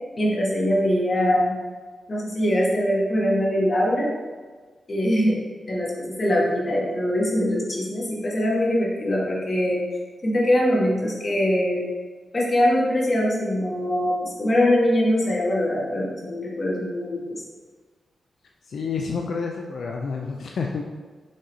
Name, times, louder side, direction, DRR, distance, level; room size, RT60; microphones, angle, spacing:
voice 1, 0.1-1.5 2.1-4.1 4.9-9.8 10.2-11.8 12.3-17.4, equal, 35° left, -4 dB, 1.5 m, -22 dB
voice 2, 18.7-20.8, left 5 dB, 70° left, 1 dB, 0.4 m, -29 dB
6.3 x 4.1 x 4.0 m, 1.4 s
wide cardioid pair, 130°, 0 cm